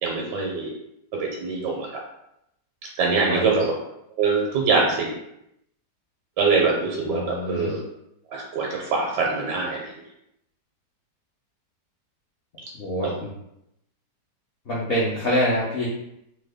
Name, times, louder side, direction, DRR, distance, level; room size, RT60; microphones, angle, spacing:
voice 1, 0.0-0.7 1.1-2.0 3.0-3.7 4.2-5.2 6.4-7.8 8.3-9.9 13.0-13.1, right 4 dB, 75° right, -1 dB, 1.2 m, -23 dB
voice 2, 3.0-3.6 7.0-7.7 12.8-13.3 14.7-15.9, equal, 65° left, -9 dB, 0.6 m, -26 dB
3.2 x 2.2 x 3.4 m, 0.81 s
omnidirectional pair, 1.9 m